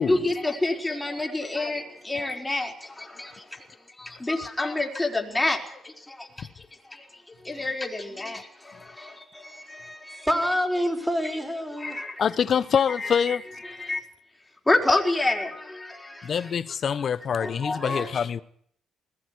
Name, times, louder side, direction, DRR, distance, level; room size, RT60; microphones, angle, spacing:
voice 1, 0.0-10.3 11.8-12.3 13.0-13.4 13.6-14.0 14.6-16.5 16.9-17.0 17.4-18.1, left 2 dB, 15° left, 4.7 m, -29 dB
voice 2, 10.2-12.0, equal, 5° right, 4.7 m, -26 dB
voice 3, 12.2-13.4 16.2-18.4, left 7 dB, 55° left, 1.1 m, -25 dB
21.0 x 17.5 x 9.8 m
cardioid pair, 90°, 0 cm